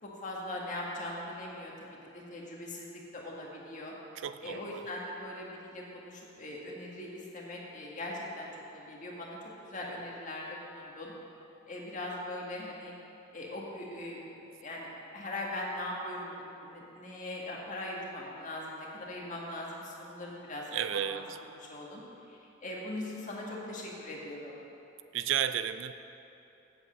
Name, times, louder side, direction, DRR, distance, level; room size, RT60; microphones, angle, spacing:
voice 1, 0.0-3.9 4.4-11.1 11.7-12.9 13.3-14.3 14.6-21.2 21.7-22.0 22.3-24.5, left 1 dB, 40° left, -3 dB, 1.9 m, -40 dB
voice 2, 4.2-4.8 20.7-21.4 25.1-25.9, right 9 dB, 75° right, 11 dB, 0.4 m, -32 dB
8.0 x 7.9 x 7.7 m, 3.0 s
head